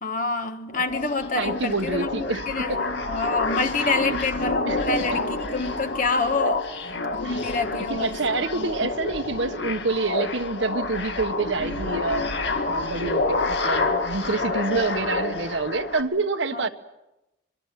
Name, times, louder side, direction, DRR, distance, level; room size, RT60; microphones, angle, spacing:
voice 1, 0.0-6.6 7.2-8.2 8.5-8.7 16.5-16.7, left 3 dB, 45° left, 1.2 m, -27 dB
sound 1, 0.7-16.0, left 2 dB, 65° left, 2.1 m, -28 dB
voice 2, 1.3-2.8 3.8-4.2 4.7-4.8 5.1-5.2 7.2-7.4 7.9-12.3 12.7-16.7, right 3 dB, 75° right, 1.2 m, -27 dB
25.0 x 22.5 x 7.5 m
head